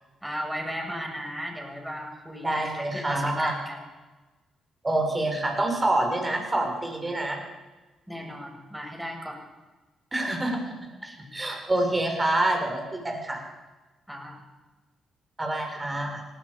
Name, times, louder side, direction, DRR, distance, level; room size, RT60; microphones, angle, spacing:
voice 1, 0.2-3.8 8.1-9.4 11.0-11.3 14.1-14.4, equal, 5° right, 1 dB, 7.1 m, -36 dB
voice 2, 2.4-3.5 4.8-7.4 10.1-10.7 11.3-13.4 15.4-16.2, right 1 dB, 25° right, 2 dB, 6.6 m, -26 dB
18.5 x 16.5 x 8.6 m, 1.2 s
hypercardioid pair, 40°, 0 cm